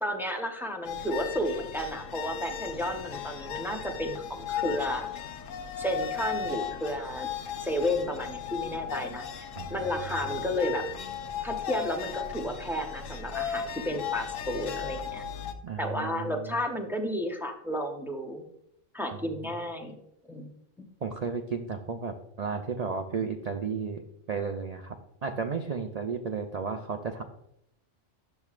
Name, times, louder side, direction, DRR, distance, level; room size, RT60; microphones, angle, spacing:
voice 1, 0.0-5.1 5.8-7.3 7.6-10.8 11.4-15.2 15.8-18.5 18.9-20.0 20.3-20.5, equal, ahead, 2 dB, 0.5 m, -32 dB
sound 1, 0.8-15.5, left 8 dB, 85° left, 1.0 m, -36 dB
voice 2, 15.6-16.3 19.4-19.5 21.0-24.0 24.3-25.0 25.2-27.2, right 5 dB, 65° right, 5 dB, 0.4 m, -33 dB
10.5 x 7.1 x 2.4 m, 0.77 s
omnidirectional pair, 1.3 m